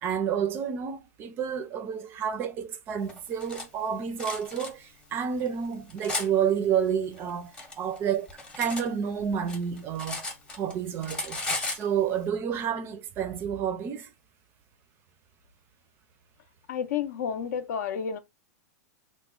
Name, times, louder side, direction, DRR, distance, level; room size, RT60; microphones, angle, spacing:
voice 1, 0.0-11.4 11.7-14.1, right 8 dB, 25° right, 0.4 m, -30 dB
Cutlery silverware, 3.1-3.7 4.2-4.7 5.4-6.3 7.2-8.9 9.2-10.7 11.0-11.9, left 2 dB, 10° left, 0.7 m, -35 dB
voice 2, 16.7-18.2, left 7 dB, 70° left, 0.5 m, -30 dB
2.9 x 2.1 x 3.7 m
supercardioid pair, 150°, 9 cm